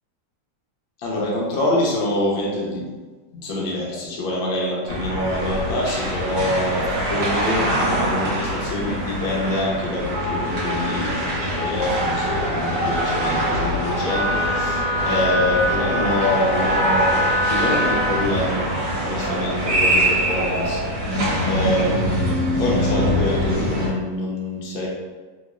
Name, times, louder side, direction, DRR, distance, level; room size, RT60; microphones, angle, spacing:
voice 1, 1.0-3.0 3.3-18.6 19.0-20.8 21.4-24.9, left 1 dB, 85° left, -3 dB, 1.5 m, -25 dB
sound 1, 4.9-23.9, equal, 60° right, 1.6 m, -24 dB
Wind instrument woodwind instrument, 14.1-18.2, equal, 85° right, 0.7 m, -24 dB
3.6 x 3.1 x 2.4 m, 1.3 s
omnidirectional pair, 2.1 m